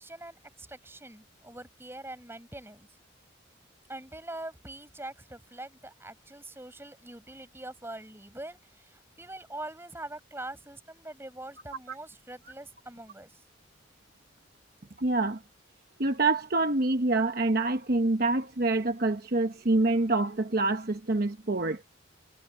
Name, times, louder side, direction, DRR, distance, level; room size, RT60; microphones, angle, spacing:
voice 1, 0.0-2.9 3.9-13.4, right 1 dB, 10° right, 5.9 m, -43 dB
voice 2, 15.0-15.4 16.0-21.8, right 2 dB, 50° right, 1.0 m, -26 dB
head